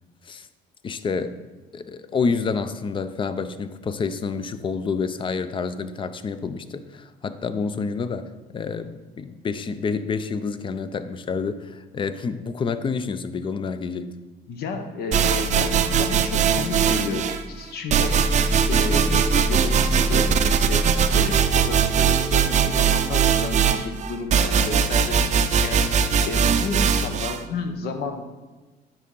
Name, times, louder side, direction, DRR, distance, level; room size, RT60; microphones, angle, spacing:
voice 1, 0.8-1.3 1.7-14.2, left 5 dB, 30° left, 12 dB, 0.5 m, -28 dB
voice 2, 14.5-20.9 21.1-25.9 26.2-28.2, left 4 dB, 70° left, 6 dB, 1.0 m, -32 dB
sound 1, 15.1-17.4 17.9-27.4, right 6 dB, 45° right, 0.5 m, -20 dB
9.0 x 3.6 x 5.4 m, 1.2 s
cardioid pair, 110°, 17 cm